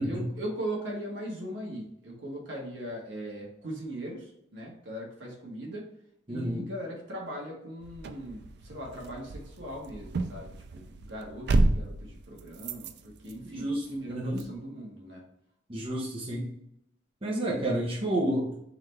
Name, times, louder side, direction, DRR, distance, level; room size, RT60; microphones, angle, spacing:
voice 1, 0.0-5.9 6.3-15.2, right 1 dB, 70° right, -2 dB, 1.4 m, -39 dB
voice 2, 6.3-6.7 13.5-14.4 15.7-16.5 17.2-18.5, right 1 dB, 30° right, -4 dB, 0.8 m, -30 dB
sound 1, 7.8-14.6, right 2 dB, 55° right, 0.4 m, -31 dB
3.8 x 3.3 x 3.3 m, 0.77 s
head